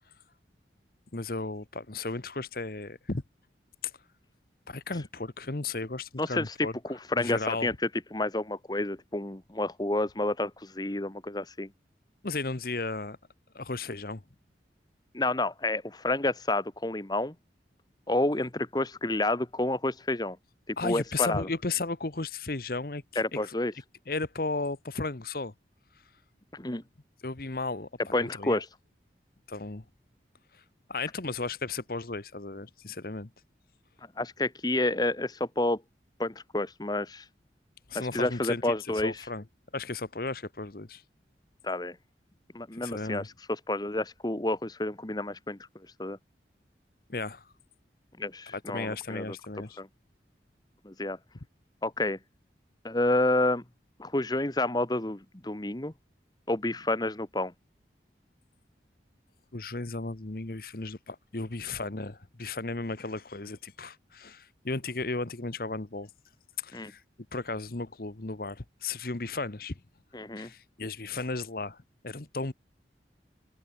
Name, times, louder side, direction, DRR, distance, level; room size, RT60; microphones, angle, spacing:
voice 1, 1.1-3.2 3.8-3.9 4.7-6.8 7.2-7.8 12.2-13.2 13.5-14.2 20.8-23.6 24.1-25.5 27.2-28.6 29.5-29.8 30.9-33.3 37.9-39.4 39.7-41.0 42.8-43.3 47.1-47.4 48.5-49.8 59.5-66.1 66.6-67.0 67.3-69.8 70.4-71.8 72.0-72.5, left 3 dB, 55° left, 1.1 m, -35 dB
voice 2, 6.2-6.5 6.9-7.7 8.1-11.7 15.1-17.3 18.1-20.4 20.7-21.5 23.2-23.7 26.5-26.8 28.1-28.7 34.2-35.8 36.2-37.2 37.9-39.3 41.6-42.0 42.5-43.2 43.7-45.6 46.0-46.2 48.2-49.2 49.8-49.9 50.8-51.2 51.8-52.2 52.8-53.6 54.0-55.9 56.5-57.5 66.7-66.9 70.1-70.5, left 2 dB, 25° left, 1.3 m, -29 dB
head